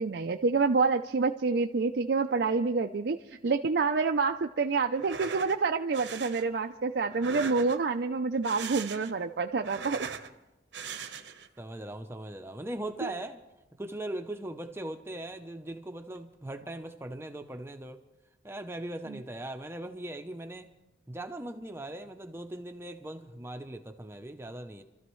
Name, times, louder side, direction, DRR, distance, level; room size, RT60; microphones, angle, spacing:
voice 1, 0.0-10.1 13.0-13.1, right 4 dB, 60° right, 5 dB, 0.5 m, -28 dB
sound 1, 4.9-5.6 5.9-6.4 7.1-8.0 8.3-9.2 9.5-10.3 10.7-11.5, right 6 dB, 75° right, 0.9 m, -40 dB
voice 2, 11.6-13.4 13.8-18.0 18.4-20.7 21.1-24.8, right 1 dB, 15° right, 6 dB, 0.6 m, -39 dB
28.5 x 13.5 x 3.1 m, 1.0 s
head